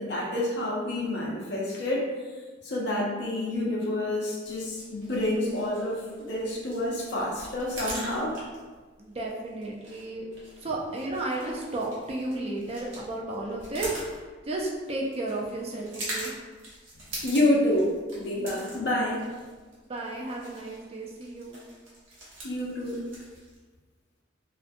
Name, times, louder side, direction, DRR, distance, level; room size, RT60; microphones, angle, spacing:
voice 1, 0.0-2.1 2.6-8.4 17.2-19.2 22.4-23.0, left 1 dB, 55° left, -3 dB, 0.6 m, -28 dB
sound 1, 4.4-23.6, right 1 dB, 80° right, 0.9 m, -43 dB
voice 2, 9.0-10.3 10.6-14.0 14.5-16.3 19.9-21.6, right 2 dB, 30° right, -2 dB, 0.4 m, -33 dB
2.5 x 2.2 x 2.5 m, 1.4 s
head